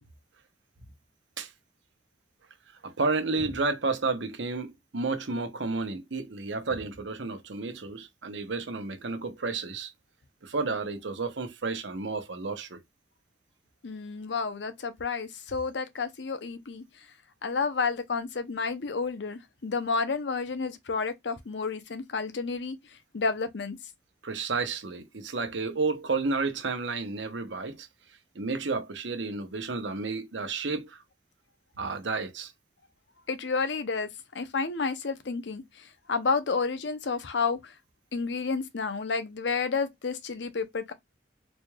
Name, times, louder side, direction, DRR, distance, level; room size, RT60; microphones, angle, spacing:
voice 1, 2.8-9.9 10.4-12.8 24.2-27.9 28.3-31.0 31.8-32.5, right 3 dB, 85° right, 0.9 m, -31 dB
voice 2, 13.8-16.8 17.4-22.8 23.1-23.8 33.3-34.1 34.3-35.6 36.1-37.7 38.1-40.9, left 4 dB, 75° left, 0.7 m, -30 dB
4.1 x 3.2 x 2.3 m
head